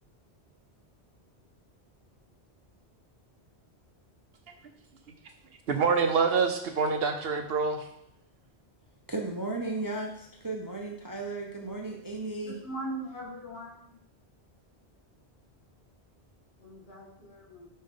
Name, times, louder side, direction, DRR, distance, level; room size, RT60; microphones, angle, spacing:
voice 1, 5.7-7.9, right 5 dB, 65° right, 6 dB, 0.8 m, -26 dB
voice 2, 9.1-12.5, right 2 dB, 25° right, 1 dB, 0.5 m, -35 dB
voice 3, 12.4-14.0 16.6-17.7, right 1 dB, 65° left, -6 dB, 2.3 m, -40 dB
5.4 x 4.9 x 3.7 m, 0.73 s
omnidirectional pair, 1.1 m